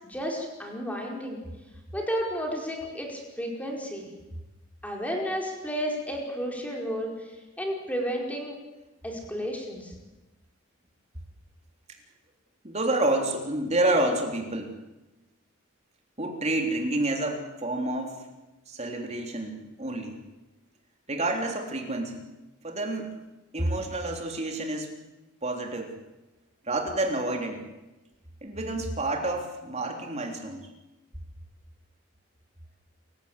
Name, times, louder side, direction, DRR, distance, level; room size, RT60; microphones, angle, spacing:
voice 1, 0.1-1.4 1.9-4.1 4.8-8.6 9.0-9.9, equal, 5° left, 0 dB, 5.0 m, -32 dB
voice 2, 12.6-14.7 16.2-18.2 18.7-20.2 21.1-22.3 22.6-23.1 23.5-24.9 25.4-25.9 26.6-27.6 28.4-30.7, right 2 dB, 35° right, 3 dB, 3.4 m, -29 dB
28.0 x 15.5 x 8.3 m, 1.1 s
head